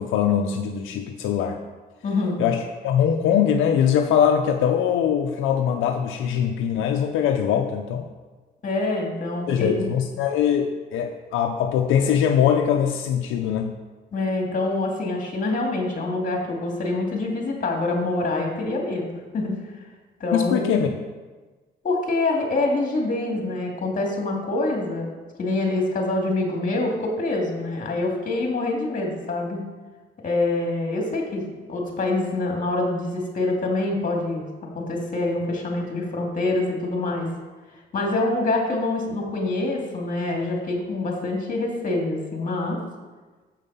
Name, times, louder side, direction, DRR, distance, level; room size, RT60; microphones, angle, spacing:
voice 1, 0.0-1.6 2.4-8.0 9.5-13.8 20.3-20.9, left 8 dB, 90° left, 4 dB, 0.6 m, -22 dB
voice 2, 2.0-2.4 8.6-9.8 14.1-19.1 19.3-19.6 20.2-20.8 21.8-25.1 25.4-29.6 30.2-34.4 34.7-37.3 37.9-42.8, left 2 dB, 40° left, 0 dB, 2.2 m, -25 dB
7.5 x 5.5 x 5.5 m, 1.3 s
cardioid pair, 90°, 20 cm